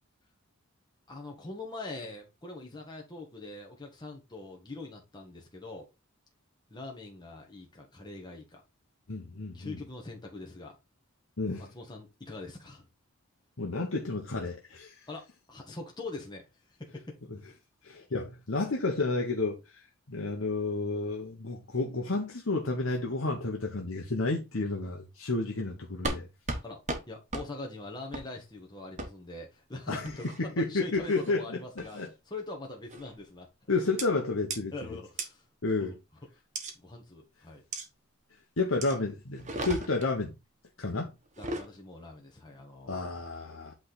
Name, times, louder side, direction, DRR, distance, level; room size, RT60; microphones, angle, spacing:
voice 1, 1.1-5.9 6.7-8.6 9.5-10.7 11.7-12.9 15.1-16.5 16.8-17.2 26.6-26.8 27.1-32.0 32.3-33.5 34.7-35.4 35.7-35.9 36.7-37.6 41.4-43.2, left 2 dB, 20° left, 1.4 m, -43 dB
voice 2, 9.1-9.8 11.4-11.7 13.6-15.0 17.8-19.8 20.1-26.3 29.9-30.1 30.6-31.6 31.9-32.1 33.7-34.7 35.6-35.9 38.6-40.3 40.8-41.1 42.9-43.7, left 3 dB, 65° left, 1.2 m, -31 dB
sound 1, 26.0-26.2 26.5-26.6 26.9-27.0 27.3-27.5 28.1-28.3 29.0-29.1 30.0-30.4 31.0-31.3 31.8-32.1 32.9-33.2 34.0-34.1 34.5-34.6 35.2-35.3 36.5-36.7 37.7-37.9 38.8-39.0 39.4-40.1 41.3-41.7, right 2 dB, 35° right, 1.3 m, -35 dB
8.6 x 3.5 x 4.0 m
head